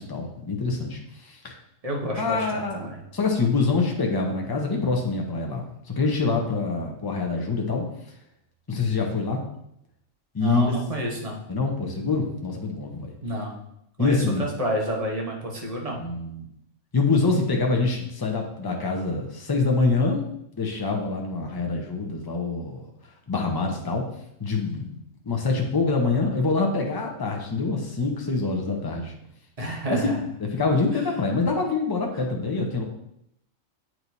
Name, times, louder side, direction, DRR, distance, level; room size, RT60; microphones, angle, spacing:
voice 1, 0.0-1.6 2.2-7.8 8.7-9.4 10.3-10.6 11.5-13.1 14.0-14.4 15.9-16.5 16.9-20.2 20.5-22.8 23.3-24.0 24.4-25.0 25.2-29.1 29.9-30.1 30.4-32.8, left 3 dB, 20° left, 1 dB, 0.7 m, -25 dB
voice 2, 1.8-3.0 10.4-11.4 13.2-13.6 14.0-16.0 29.6-30.2, equal, 30° right, -1 dB, 1.1 m, -29 dB
8.4 x 4.5 x 2.7 m, 0.77 s
omnidirectional pair, 1.4 m